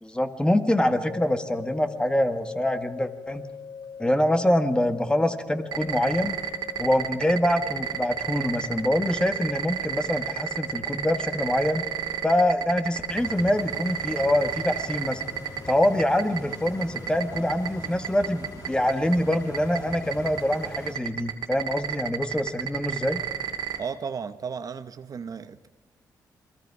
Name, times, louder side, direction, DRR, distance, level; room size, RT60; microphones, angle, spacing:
voice 1, 0.0-3.4 4.0-6.4 6.8-11.8 12.2-15.2 15.7-23.2, left 1 dB, 10° left, 8 dB, 1.7 m, -25 dB
sound 1, 1.1-16.6, left 6 dB, 70° left, 1.0 m, -43 dB
sound 2, 5.7-23.8, right 9 dB, 75° right, 2.6 m, -29 dB
Stream, 13.1-20.9, left 2 dB, 55° left, 3.4 m, -42 dB
voice 2, 23.7-25.7, right 6 dB, 55° right, 11 dB, 0.9 m, -34 dB
28.5 x 22.0 x 4.9 m, 1.1 s
cardioid pair, 85°, 8 cm